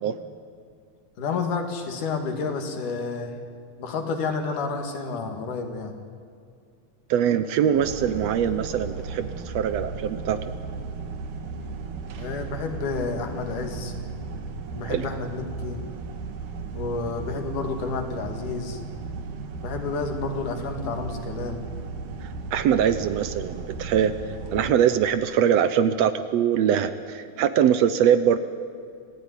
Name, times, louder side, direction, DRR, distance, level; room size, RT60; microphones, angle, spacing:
voice 1, 1.2-3.4 3.8-5.9 12.2-13.9 14.7-15.8 16.7-18.8 19.6-21.6, left 4 dB, 90° left, 5 dB, 3.7 m, -30 dB
voice 2, 7.1-10.5 14.9-15.1 22.2-24.1 24.5-28.4, right 9 dB, 70° right, 12 dB, 1.8 m, -22 dB
sound 1, 7.7-24.7, right 4 dB, 90° right, 3.1 m, -35 dB
27.0 x 15.5 x 10.0 m, 2.2 s
omnidirectional pair, 3.5 m